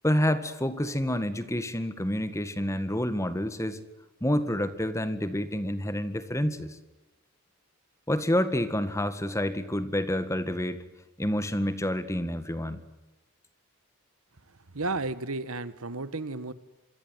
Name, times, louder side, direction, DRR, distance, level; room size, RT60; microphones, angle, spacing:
voice 1, 0.0-3.8 4.2-6.8 8.1-10.8 11.2-12.8, left 1 dB, 15° left, 12 dB, 1.9 m, -28 dB
voice 2, 14.7-16.5, right 3 dB, 70° right, 14 dB, 1.7 m, -32 dB
26.5 x 24.0 x 9.5 m, 0.95 s
head